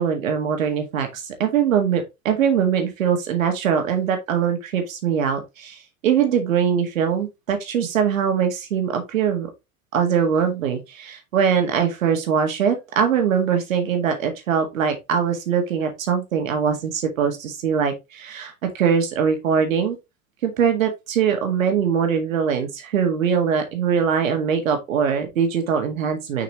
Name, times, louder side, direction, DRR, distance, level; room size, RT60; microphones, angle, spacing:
voice 1, 0.0-9.5 9.9-20.0 20.4-26.4, right 7 dB, 70° right, 1.8 m, -22 dB
6.3 x 5.8 x 3.0 m
figure-of-eight pair, 75°, 41 cm